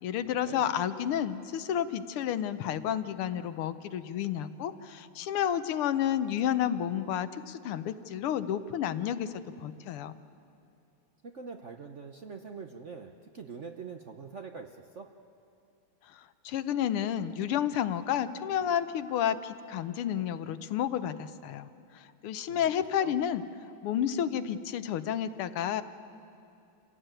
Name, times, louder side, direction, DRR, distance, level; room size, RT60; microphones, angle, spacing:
voice 1, 0.0-10.1 16.1-21.7 21.9-23.4 23.8-25.8, left 9 dB, 85° left, 12 dB, 1.8 m, -31 dB
voice 2, 11.2-15.1 22.5-22.7 23.0-23.2, right 5 dB, 55° right, 5 dB, 0.8 m, -44 dB
28.0 x 17.0 x 9.1 m, 2.6 s
omnidirectional pair, 2.4 m